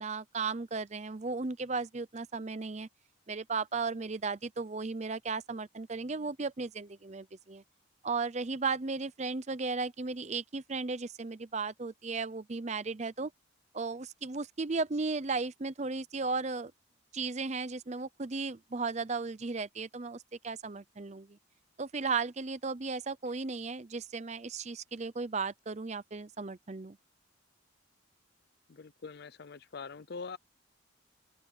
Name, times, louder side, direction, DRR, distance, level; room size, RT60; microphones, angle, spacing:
voice 1, 0.0-2.9 3.3-7.6 8.0-13.3 13.7-16.7 17.1-21.4 21.8-27.0, right 4 dB, 35° right, 0.6 m, -35 dB
voice 2, 28.7-30.4, left 4 dB, 50° left, 0.5 m, -43 dB
open air
head